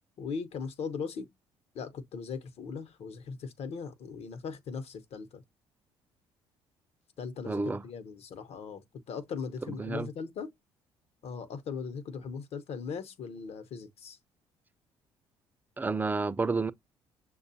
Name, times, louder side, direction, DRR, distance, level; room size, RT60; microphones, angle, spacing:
voice 1, 0.2-1.3 1.7-5.4 7.2-10.5 11.2-14.2, left 5 dB, 60° left, 0.9 m, -39 dB
voice 2, 7.5-7.8 9.7-10.1 15.8-16.7, right 3 dB, 15° right, 0.4 m, -30 dB
6.5 x 2.3 x 2.7 m
supercardioid pair, 65°, 12 cm